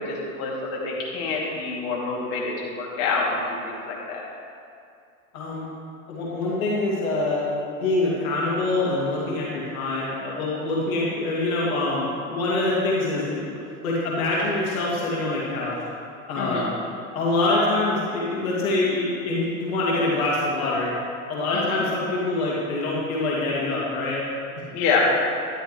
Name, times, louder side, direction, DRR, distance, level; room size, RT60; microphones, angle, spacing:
voice 1, 0.0-4.2 16.4-16.7 21.5-21.8 24.7-25.0, left 4 dB, 55° left, -5 dB, 2.8 m, -27 dB
voice 2, 5.3-5.7 6.1-7.4 7.8-15.8 16.3-16.6 17.1-20.9 21.3-24.2, left 2 dB, 70° left, -5 dB, 2.6 m, -25 dB
12.5 x 11.5 x 3.2 m, 2.5 s
hypercardioid pair, 90°, 43 cm